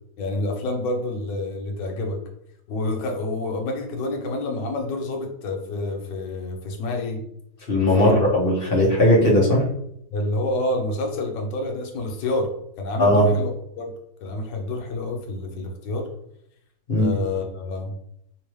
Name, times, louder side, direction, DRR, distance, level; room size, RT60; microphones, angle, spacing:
voice 1, 0.2-2.2 2.7-7.2 8.0-8.2 10.1-12.5 12.8-13.9 14.2-16.1 17.0-17.9, left 2 dB, 70° left, 2 dB, 1.3 m, -28 dB
voice 2, 7.7-9.7 13.0-13.3 16.9-17.1, left 1 dB, 40° left, -5 dB, 0.9 m, -18 dB
3.5 x 2.8 x 3.1 m, 0.73 s
omnidirectional pair, 2.2 m